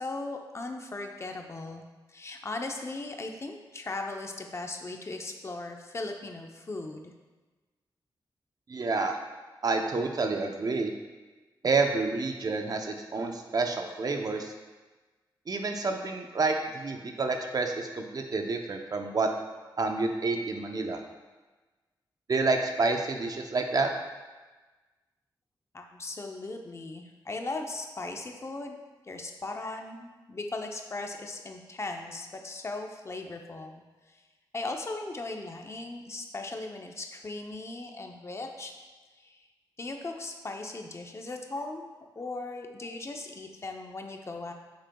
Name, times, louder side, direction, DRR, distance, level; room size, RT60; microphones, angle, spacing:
voice 1, 0.0-1.8 2.1-7.1 25.7-28.8 29.0-33.8 34.1-34.2 34.5-38.7 39.2-39.4 39.8-44.5, left 2 dB, 35° left, 3 dB, 0.7 m, -38 dB
voice 2, 8.7-9.2 9.6-10.9 11.6-14.5 15.5-19.3 19.8-21.0 22.3-23.9, right 3 dB, 45° right, 4 dB, 0.7 m, -29 dB
8.1 x 6.4 x 2.3 m, 1.2 s
wide cardioid pair, 110°, 9 cm